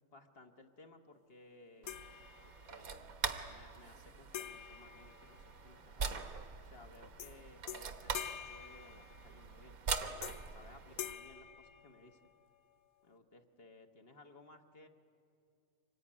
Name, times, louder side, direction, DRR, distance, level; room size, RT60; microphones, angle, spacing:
voice 1, 0.1-2.0 2.4-3.1 3.5-6.3 6.6-9.8 10.5-12.2 13.0-14.9, left 2 dB, 45° left, 5 dB, 1.5 m, -59 dB
sound 1, 1.8-11.2, right 5 dB, 85° right, 1.7 m, -43 dB
sound 2, 1.9-2.9 4.3-5.9 7.2-7.4 7.7-9.5 10.2-10.6 11.0-12.4, left 9 dB, 85° left, 1.2 m, -47 dB
25.0 x 20.0 x 9.9 m, 2.6 s
omnidirectional pair, 1.5 m